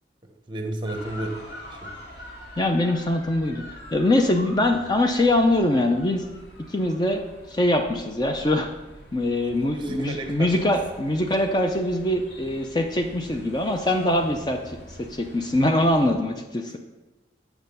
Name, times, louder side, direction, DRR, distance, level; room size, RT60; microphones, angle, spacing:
voice 1, 0.5-1.3 1.8-1.9 9.5-10.6, right 1 dB, 25° right, 4 dB, 0.9 m, -32 dB
sound 1, 0.8-16.1, equal, 65° left, 2.2 m, -44 dB
voice 2, 2.6-3.6 3.9-6.3 6.7-8.7 9.1-16.7, left 1 dB, 25° left, 5 dB, 0.4 m, -23 dB
7.0 x 6.5 x 5.4 m, 1.1 s
head